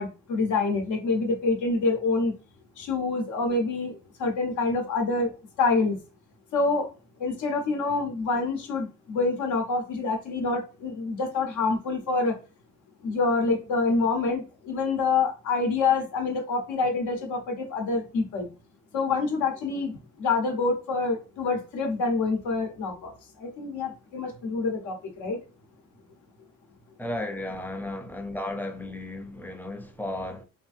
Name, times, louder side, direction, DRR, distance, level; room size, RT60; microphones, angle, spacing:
voice 1, 0.0-2.3 2.8-6.0 6.5-6.9 7.2-12.4 13.0-18.5 18.9-23.1 23.4-25.4, left 3 dB, 80° left, 1.0 m, -26 dB
voice 2, 27.0-30.4, left 1 dB, 5° left, 0.6 m, -34 dB
3.0 x 2.6 x 2.4 m
cardioid pair, 90°, 30 cm